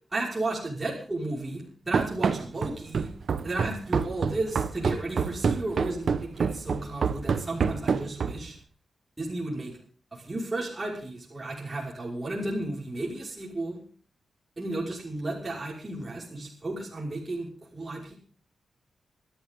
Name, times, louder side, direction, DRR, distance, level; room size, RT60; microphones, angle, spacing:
voice 1, 0.1-3.1 3.4-8.6 9.2-9.8 10.1-13.8 14.6-18.2, right 2 dB, 20° right, -4 dB, 5.6 m, -33 dB
Run, 1.9-8.6, right 5 dB, 55° right, 1.2 m, -27 dB
26.5 x 12.5 x 3.8 m, 0.42 s
wide cardioid pair, 150°, 0 cm